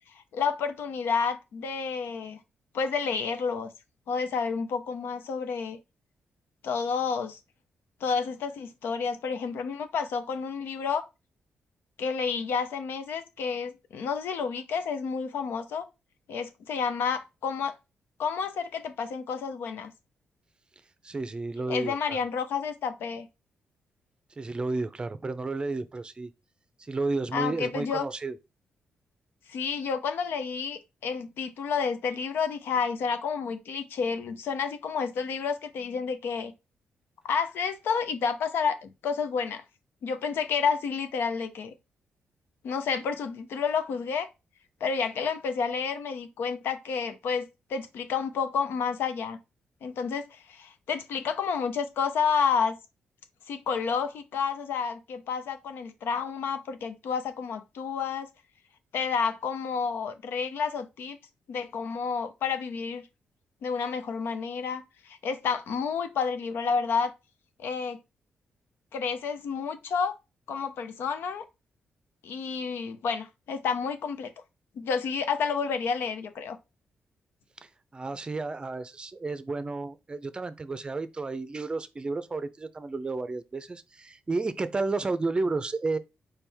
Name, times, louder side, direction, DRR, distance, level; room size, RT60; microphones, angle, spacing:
voice 1, 0.1-2.4 2.7-3.7 4.1-5.8 6.6-7.4 8.0-11.0 12.0-15.8 16.3-17.8 18.2-19.9 21.7-23.3 27.3-28.1 29.5-36.5 37.2-39.6 40.0-41.7 42.6-44.3 44.8-49.4 49.8-52.8 53.5-58.3 58.9-61.2 61.5-63.0 63.6-67.1 67.6-68.0 68.9-70.1 70.5-71.4 72.2-74.3 74.8-76.6, left 6 dB, 80° left, 0.7 m, -30 dB
voice 2, 21.0-22.2 24.4-26.3 26.8-28.4 77.6-86.0, right 3 dB, 25° right, 0.5 m, -32 dB
4.5 x 3.3 x 3.5 m
cardioid pair, 95°, 4 cm